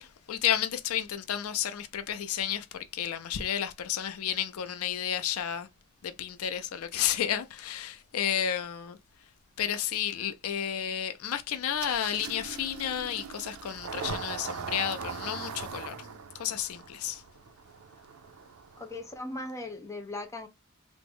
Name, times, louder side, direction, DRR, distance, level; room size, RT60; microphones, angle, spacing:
voice 1, 0.0-5.7 6.0-9.0 9.6-16.1 16.3-17.2, left 9 dB, 75° left, 0.4 m, -32 dB
Engine starting, 11.8-19.1, right 6 dB, 70° right, 0.5 m, -40 dB
voice 2, 18.8-20.5, left 2 dB, 15° left, 0.6 m, -38 dB
3.4 x 2.0 x 3.4 m
head